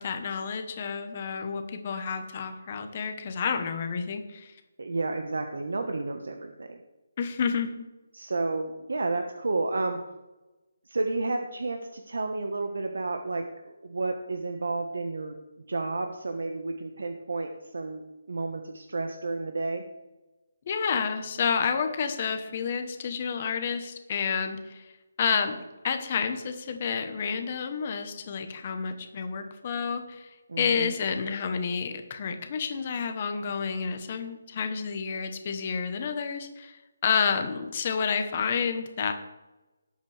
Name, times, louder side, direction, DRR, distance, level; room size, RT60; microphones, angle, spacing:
voice 1, 0.0-4.5 7.2-7.9 20.7-24.8 25.2-25.6 25.8-30.3 30.6-39.1, left 6 dB, 25° left, 7 dB, 1.0 m, -30 dB
voice 2, 4.8-6.8 8.1-10.0 10.9-15.3 15.7-19.8 30.5-30.9, right 3 dB, 80° right, 4 dB, 1.3 m, -31 dB
18.5 x 8.2 x 3.4 m, 1.1 s
hypercardioid pair, 180°, 0 cm